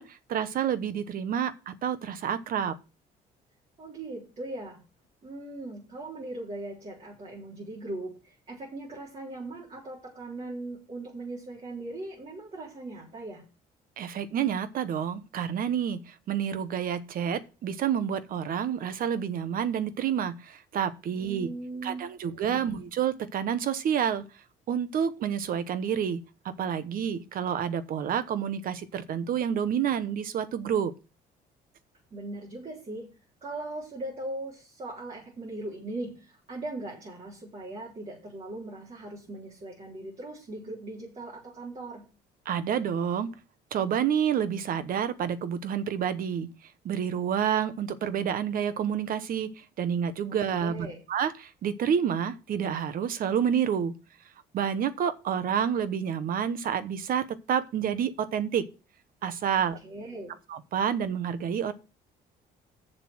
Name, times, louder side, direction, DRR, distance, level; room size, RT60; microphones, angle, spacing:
voice 1, 0.0-2.8 14.0-21.5 21.8-24.3 24.7-30.9 42.4-43.3 43.7-46.5 46.8-53.9 54.5-58.7 59.2-59.8 60.5-61.7, right 8 dB, 60° right, 1.1 m, -29 dB
voice 2, 3.8-4.8 5.2-13.4 21.1-22.7 32.1-33.1 33.4-42.1 50.3-51.0 59.8-60.3, right 2 dB, 35° right, 3.7 m, -39 dB
7.2 x 6.7 x 6.3 m
cardioid pair, 110°, 17 cm